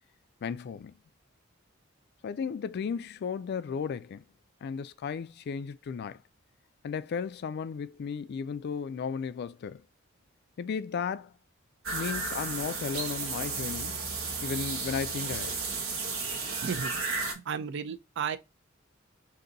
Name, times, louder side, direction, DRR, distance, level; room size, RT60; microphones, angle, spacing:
voice 1, 0.4-1.0 2.2-4.3 4.6-6.2 6.8-9.8 10.6-11.3 11.9-14.0 14.4-15.6, left 6 dB, 50° left, 0.3 m, -34 dB
golden oriole insects, 11.8-17.3, right 4 dB, 90° right, 1.1 m, -33 dB
voice 2, 17.5-18.4, right 6 dB, 60° right, 0.4 m, -33 dB
3.9 x 2.6 x 3.8 m
head